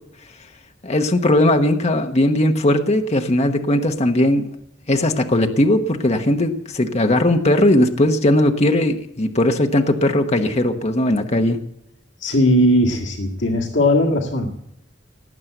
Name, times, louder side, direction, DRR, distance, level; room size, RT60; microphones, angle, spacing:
voice 1, 0.8-4.5 4.9-11.6, left 1 dB, 35° left, 5 dB, 1.1 m, -18 dB
voice 2, 12.2-14.6, left 1 dB, 75° left, 1 dB, 2.0 m, -18 dB
18.5 x 8.6 x 7.9 m, 0.80 s
head